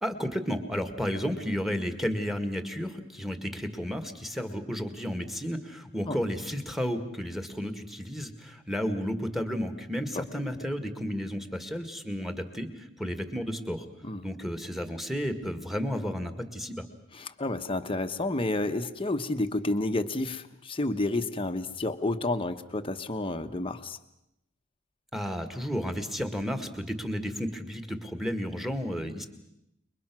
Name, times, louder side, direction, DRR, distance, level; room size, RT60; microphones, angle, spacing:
voice 1, 0.0-13.9 14.2-16.9 25.1-29.3, equal, ahead, 8 dB, 1.9 m, -32 dB
voice 2, 17.1-24.0, left 2 dB, 25° left, 6 dB, 1.1 m, -30 dB
28.5 x 22.5 x 6.2 m, 0.84 s
head